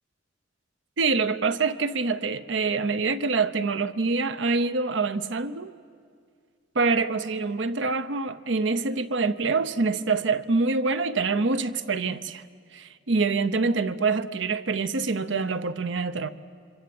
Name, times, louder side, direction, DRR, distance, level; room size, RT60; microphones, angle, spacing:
voice 1, 1.0-5.7 6.7-12.4 12.7-16.3, right 4 dB, 70° right, 0.8 m, -25 dB
27.5 x 25.0 x 7.9 m
head